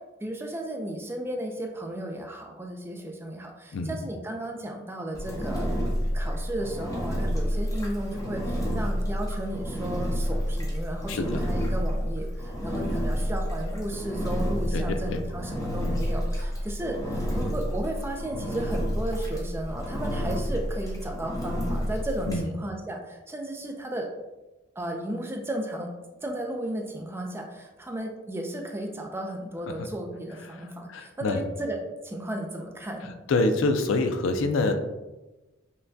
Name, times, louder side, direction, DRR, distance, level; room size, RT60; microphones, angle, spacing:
voice 1, 0.2-5.7 6.1-24.1 24.8-25.9 26.2-33.1, right 1 dB, 10° right, 2 dB, 0.3 m, -34 dB
Engine, 5.1-22.4, equal, 15° left, 0.8 m, -29 dB
voice 2, 11.1-11.4 14.7-14.8 15.1-15.2 22.3-22.5 30.9-31.4 33.3-34.8, left 2 dB, 75° left, 8 dB, 0.4 m, -25 dB
5.6 x 2.2 x 2.6 m, 1.1 s
head